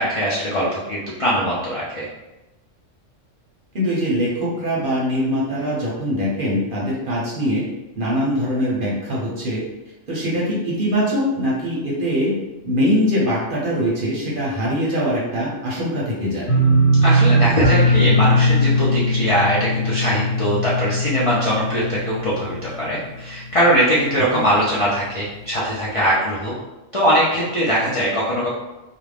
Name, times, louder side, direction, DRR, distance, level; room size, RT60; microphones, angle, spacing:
voice 1, 0.0-2.1 17.0-26.5 26.9-28.5, equal, 50° left, -7 dB, 0.4 m, -21 dB
voice 2, 3.7-7.6 8.0-9.6 10.1-12.3 12.6-16.5 24.3-24.4, equal, 50° right, -5 dB, 0.7 m, -22 dB
sound 1, 16.5-23.3 23.6-24.2 24.6-24.7, equal, 80° left, 1.2 m, -19 dB
2.4 x 2.1 x 3.2 m, 1.0 s
omnidirectional pair, 1.3 m